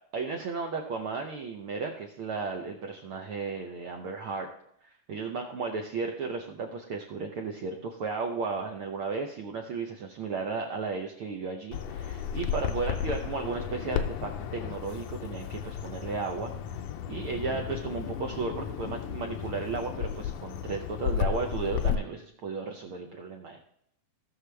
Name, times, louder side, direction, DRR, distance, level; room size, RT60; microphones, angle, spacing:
voice 1, 0.1-4.5 5.1-16.5 17.1-23.6, right 4 dB, 75° right, 2 dB, 1.2 m, -34 dB
Bird vocalization bird call bird song, 11.7-22.0, left 9 dB, 75° left, 1.7 m, -33 dB
16.5 x 6.4 x 3.4 m, 0.72 s
omnidirectional pair, 3.4 m